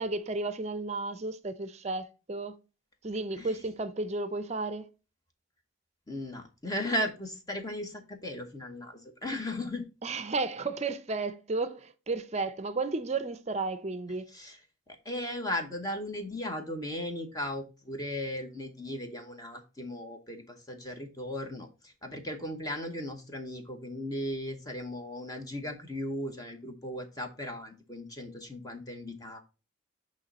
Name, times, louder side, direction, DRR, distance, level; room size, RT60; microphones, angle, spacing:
voice 1, 0.0-2.5 3.0-4.9 10.0-14.3, right 3 dB, 30° right, 0.5 m, -33 dB
voice 2, 6.1-9.9 14.3-14.6 14.9-29.4, left 1 dB, 20° left, 0.9 m, -36 dB
8.5 x 3.0 x 4.1 m
head